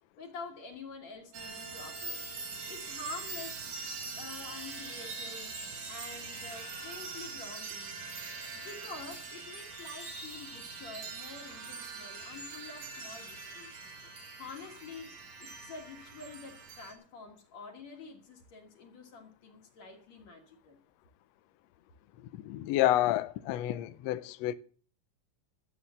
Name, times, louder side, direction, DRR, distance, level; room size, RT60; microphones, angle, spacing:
voice 1, 0.2-2.2 2.7-3.7 4.2-8.0 8.4-13.8 14.4-20.8, left 3 dB, 55° left, 2.7 m, -47 dB
sound 1, 1.3-16.9, right 4 dB, 65° right, 3.2 m, -43 dB
voice 2, 22.4-24.5, left 14 dB, 80° left, 1.5 m, -29 dB
12.5 x 8.1 x 7.0 m
omnidirectional pair, 3.9 m